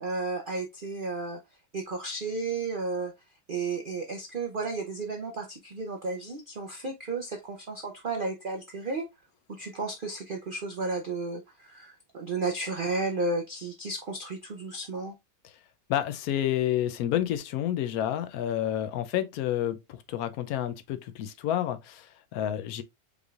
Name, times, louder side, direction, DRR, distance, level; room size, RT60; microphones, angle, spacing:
voice 1, 0.0-1.4 1.7-3.1 3.5-9.1 9.6-15.1, right 3 dB, 80° right, 0.4 m, -33 dB
voice 2, 15.9-22.8, left 11 dB, 70° left, 0.9 m, -29 dB
5.2 x 3.2 x 2.4 m
omnidirectional pair, 1.8 m